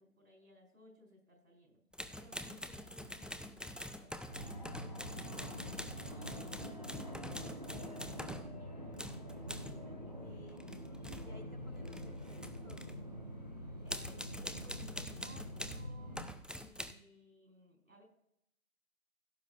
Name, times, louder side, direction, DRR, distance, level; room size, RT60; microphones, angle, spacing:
voice 1, 0.0-1.8 2.1-4.1 4.7-8.8 9.3-10.4 13.8-16.2 16.5-18.0, equal, 65° right, 1 dB, 4.6 m, -61 dB
sound 1, 1.9-8.5 8.9-9.8 10.5-11.4 11.8-13.0 13.9-15.9 16.1-16.9, left 1 dB, ahead, 0.4 m, -45 dB
Fixed-wing aircraft airplane, 4.3-16.3, equal, 30° right, 1.0 m, -46 dB
voice 2, 10.1-13.0, left 1 dB, 90° left, -2 dB, 4.1 m, -60 dB
16.5 x 8.6 x 2.5 m, 0.76 s
figure-of-eight pair, 170°, 43 cm